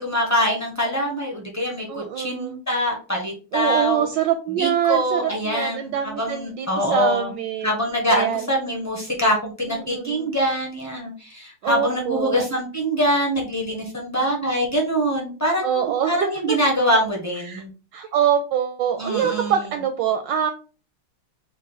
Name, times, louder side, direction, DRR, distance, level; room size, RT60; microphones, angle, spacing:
voice 1, 0.0-4.1 4.6-7.3 7.6-17.7 19.0-19.5, equal, 15° left, -1 dB, 0.5 m, -24 dB
voice 2, 1.9-2.6 3.5-7.8 8.1-8.5 9.7-10.3 11.6-12.4 15.6-16.6 17.5-17.6 17.9-20.5, right 9 dB, 75° right, 7 dB, 1.1 m, -24 dB
4.9 x 2.3 x 3.9 m, 0.35 s
omnidirectional pair, 2.3 m